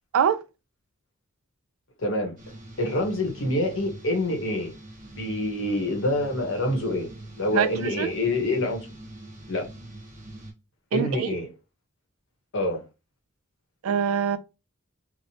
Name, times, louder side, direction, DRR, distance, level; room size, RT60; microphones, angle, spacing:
voice 1, 2.0-2.4 2.8-4.7 5.2-7.1 7.4-8.9 9.5-9.7 10.9-11.5 12.5-12.9, left 1 dB, 65° left, 0.9 m, -26 dB
sound 1, 2.4-10.5, right 1 dB, 40° right, 0.8 m, -44 dB
voice 2, 7.5-8.1 10.9-11.3 13.8-14.4, right 8 dB, 75° right, 0.3 m, -24 dB
3.0 x 2.0 x 2.7 m
head